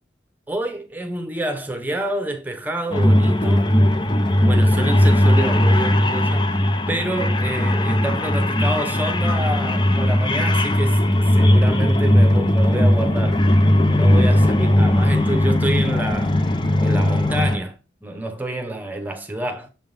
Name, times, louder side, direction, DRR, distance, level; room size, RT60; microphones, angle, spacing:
voice 1, 0.5-3.7 4.5-11.0 11.3-13.4 13.9-16.4 16.8-19.7, right 1 dB, 10° right, 0.9 m, -28 dB
sound 1, 2.9-17.6, left 1 dB, 25° left, 0.5 m, -18 dB
7.1 x 3.8 x 5.3 m
head